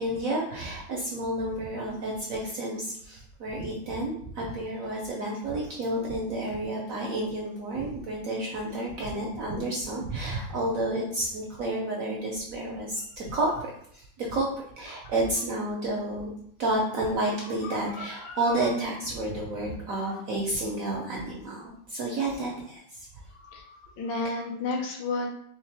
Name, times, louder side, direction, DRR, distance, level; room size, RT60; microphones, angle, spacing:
voice 1, 0.0-13.7 13.9-14.5 14.8-16.3 16.6-23.1, right 1 dB, 70° right, -2 dB, 0.8 m, -30 dB
voice 2, 17.9-18.4 20.0-20.2 23.4-25.3, left 3 dB, 75° left, 0 dB, 1.4 m, -33 dB
3.7 x 3.1 x 3.3 m, 0.68 s
omnidirectional pair, 2.1 m